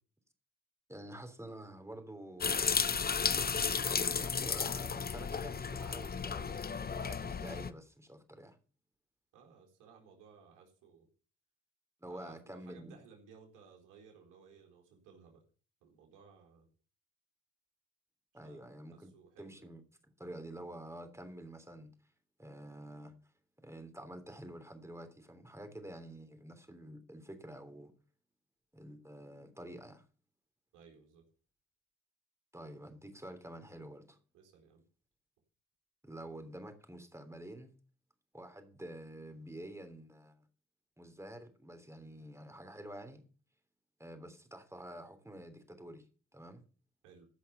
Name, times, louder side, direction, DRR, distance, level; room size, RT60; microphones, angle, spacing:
voice 1, 0.9-2.8 3.8-8.6 12.0-13.0 18.3-19.1 19.4-19.8 20.2-21.9 22.4-23.1 23.6-27.9 28.7-30.0 32.5-34.2 36.0-37.7 38.3-40.4 41.0-43.3 44.0-46.1 46.3-46.6, right 1 dB, 10° right, 3.3 m, -48 dB
sound 1, 2.4-7.7, left 6 dB, 30° left, 0.8 m, -33 dB
voice 2, 9.3-11.1 12.1-15.4 15.8-16.7 18.4-18.6 18.9-19.7 30.7-31.2 34.3-34.8 47.0-47.3, right 6 dB, 80° right, 4.3 m, -59 dB
15.0 x 5.7 x 6.8 m
supercardioid pair, 55°, 31 cm